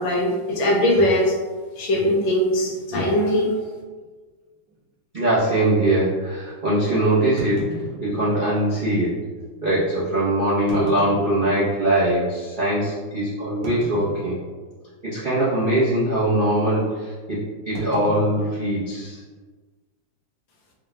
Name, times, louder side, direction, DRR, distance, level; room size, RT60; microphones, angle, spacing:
voice 1, 0.0-1.3 1.8-3.7, left 1 dB, 75° left, 0 dB, 1.3 m, -20 dB
sound 1, 2.6-2.8 3.6-3.7 4.0-4.1 4.7-4.8 7.4-8.6 9.4-9.5 10.5-12.0 12.5-12.6 13.6-14.7 15.0-15.4 15.6-15.9 17.7-19.4, left 1 dB, 65° right, 1.4 m, -36 dB
voice 2, 5.1-7.7 8.0-9.1 9.6-14.4 15.0-17.4 17.6-19.2, right 1 dB, 85° right, -11 dB, 0.4 m, -21 dB
4.3 x 2.3 x 3.3 m, 1.4 s
omnidirectional pair, 2.3 m